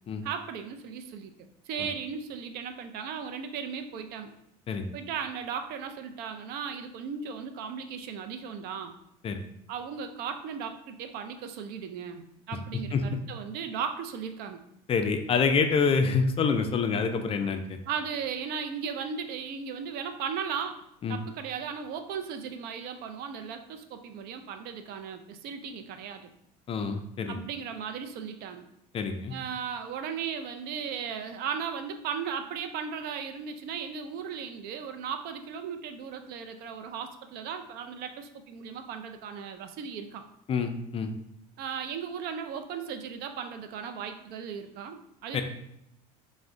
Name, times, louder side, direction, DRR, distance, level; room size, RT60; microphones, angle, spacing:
voice 1, 0.2-1.3 1.7-4.3 4.9-8.9 9.7-14.6 17.4-17.5 17.9-20.8 21.1-26.3 27.3-28.6 29.3-40.2 41.6-45.4, right 7 dB, 60° right, 7 dB, 0.4 m, -36 dB
voice 2, 14.9-17.8 21.0-21.2 26.7-27.4 28.9-29.3 40.5-41.1 45.3-45.4, left 5 dB, 30° left, 6 dB, 0.4 m, -27 dB
3.6 x 2.1 x 3.4 m, 0.79 s
supercardioid pair, 90°, 19 cm